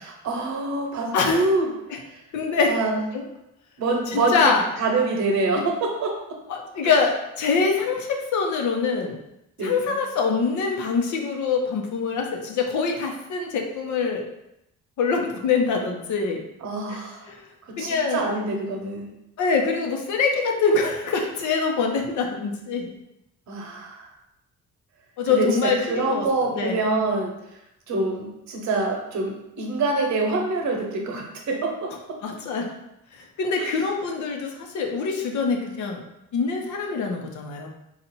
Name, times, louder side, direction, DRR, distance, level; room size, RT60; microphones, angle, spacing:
voice 1, 0.0-1.7 2.1-2.2 2.7-3.0 3.8-6.4 9.6-10.0 16.6-17.3 17.6-19.1 23.5-24.1 25.3-27.3 27.9-32.2 33.6-33.8, right 2 dB, 65° right, 2 dB, 1.0 m, -26 dB
voice 2, 1.1-1.5 1.9-2.0 2.3-2.7 3.1-3.2 4.1-4.7 6.5-9.2 9.6-14.2 15.0-16.4 16.9-17.0 17.2-17.4 17.8-18.2 19.4-22.9 25.2-26.8 32.2-32.7 33.4-36.0 36.3-37.7, left 4 dB, 75° left, 2 dB, 0.9 m, -24 dB
4.1 x 2.5 x 4.3 m, 0.85 s
cardioid pair, 90°, 30 cm